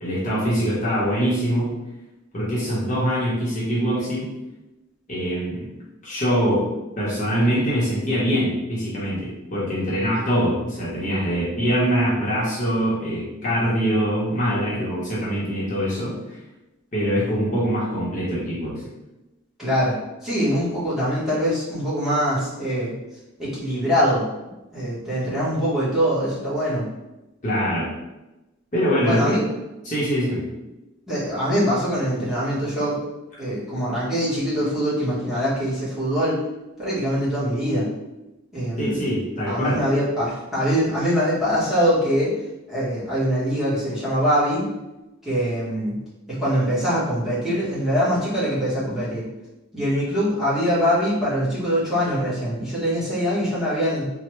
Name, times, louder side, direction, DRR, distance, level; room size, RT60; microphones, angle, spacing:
voice 1, 0.0-1.7 2.3-4.3 5.1-5.7 6.0-6.7 7.0-16.4 16.9-18.8 27.4-27.9 28.7-29.4 29.8-30.4 38.8-39.8, equal, 40° left, -7 dB, 0.8 m, -23 dB
voice 2, 19.6-20.0 20.2-22.9 23.4-24.2 24.7-26.9 29.0-29.4 31.1-33.0 33.4-36.4 36.8-37.9 38.5-39.0 39.5-42.3 42.7-44.6 45.2-45.9 46.3-49.2 49.7-54.1, equal, ahead, -11 dB, 1.0 m, -23 dB
3.2 x 2.1 x 3.0 m, 0.99 s
head